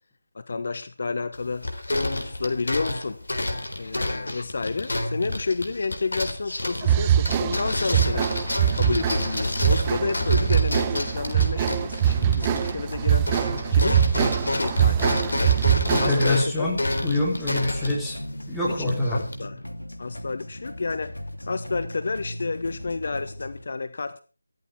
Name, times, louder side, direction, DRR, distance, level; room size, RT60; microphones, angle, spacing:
voice 1, 0.3-1.7 2.1-3.2 3.8-8.4 8.7-13.3 13.7-15.6 16.0-16.7 18.7-19.6 20.0-24.2, left 4 dB, 45° left, 12 dB, 1.1 m, -30 dB
sound 1, 1.3-13.0 13.2-19.4, left 2 dB, 65° left, 4.0 m, -29 dB
sound 2, 6.8-16.4, right 10 dB, 15° right, 0.7 m, -23 dB
sound 3, 7.6-23.6, left 1 dB, 80° left, 2.7 m, -38 dB
voice 2, 15.9-18.2 18.5-19.2, left 2 dB, ahead, -8 dB, 3.7 m, -25 dB
14.5 x 13.5 x 4.6 m, 0.34 s
figure-of-eight pair, 160°, 0 cm